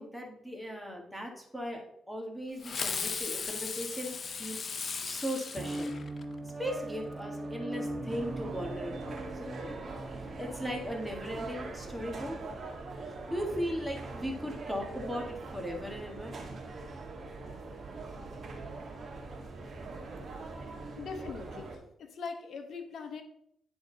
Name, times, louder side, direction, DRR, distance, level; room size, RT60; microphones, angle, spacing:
voice 1, 0.0-4.6 5.0-6.0 6.6-9.8 10.4-12.4 13.1-16.4, equal, ahead, 0 dB, 1.7 m, -38 dB
Fireworks, 2.6-6.5, left 5 dB, 50° left, 0.6 m, -37 dB
sound 1, 5.6-12.9, right 1 dB, 25° right, 0.7 m, -41 dB
sound 2, 8.1-21.8, right 3 dB, 50° right, 1.4 m, -42 dB
voice 2, 20.9-23.2, left 5 dB, 65° left, 6 dB, 1.0 m, -41 dB
9.6 x 3.8 x 4.0 m, 0.73 s
cardioid pair, 95°, 0 cm